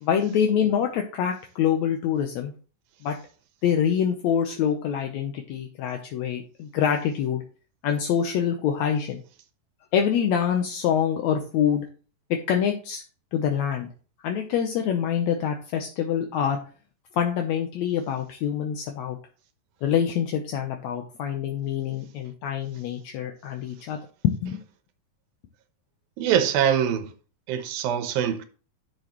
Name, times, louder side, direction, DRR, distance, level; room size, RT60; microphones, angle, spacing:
voice 1, 0.0-2.5 3.0-3.2 3.6-7.4 7.8-9.2 9.9-11.9 12.3-13.0 13.3-13.9 14.2-16.6 17.1-19.2 19.8-24.0 24.4-24.6, left 8 dB, 75° left, 1.7 m, -25 dB
voice 2, 26.2-27.1 27.5-28.4, right 9 dB, 85° right, 2.8 m, -23 dB
10.5 x 6.3 x 3.0 m
omnidirectional pair, 4.1 m